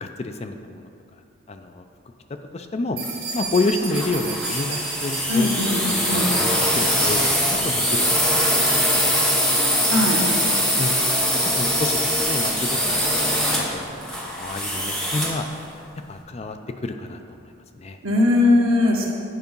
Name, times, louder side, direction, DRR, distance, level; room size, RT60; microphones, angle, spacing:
voice 1, 0.0-0.9 1.5-1.8 2.5-3.0 3.3-5.6 6.1-8.7 10.8-11.0 11.4-13.9 14.1-15.4 16.1-17.2 17.7-18.0, left 2 dB, 30° left, 6 dB, 0.4 m, -29 dB
sound 1, 3.0-10.7, right 4 dB, 45° right, 2.1 m, -36 dB
sound 2, 3.9-15.5, equal, ahead, 0.9 m, -22 dB
voice 2, 5.3-6.3 9.9-10.2 18.0-19.1, left 2 dB, 85° right, -2 dB, 1.5 m, -19 dB
9.3 x 4.7 x 5.3 m, 2.5 s
head